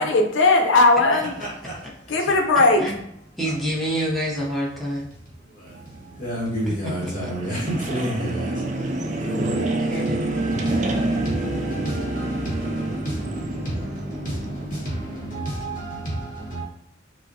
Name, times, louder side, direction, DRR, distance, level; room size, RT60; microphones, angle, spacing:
voice 1, 0.0-1.3 2.1-2.8, left 2 dB, 80° left, 3 dB, 0.6 m, -17 dB
voice 2, 1.6-2.3 3.4-3.6 5.4-8.7 9.0-16.6, right 1 dB, 45° left, -5 dB, 1.3 m, -31 dB
voice 3, 3.4-5.1 7.0-7.3 9.0-9.3 9.9-10.4, equal, ahead, -5 dB, 0.7 m, -27 dB
sound 1, 5.7-15.4, right 2 dB, 40° right, 0.3 m, -28 dB
5.4 x 2.0 x 2.7 m, 0.75 s
head